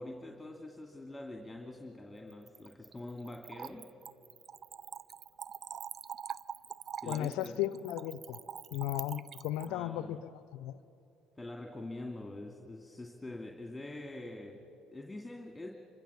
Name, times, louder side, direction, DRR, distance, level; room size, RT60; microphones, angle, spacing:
voice 1, 0.0-3.9 7.0-7.6 9.6-10.2 11.4-15.7, left 2 dB, 10° left, 2.3 m, -45 dB
Splash splatter / Trickle dribble, 2.3-9.7, right 7 dB, 45° right, 0.5 m, -44 dB
voice 2, 7.0-8.4 8.7-10.2 10.5-10.8, left 13 dB, 70° left, 0.6 m, -35 dB
27.0 x 25.0 x 7.2 m
hypercardioid pair, 60°, 0 cm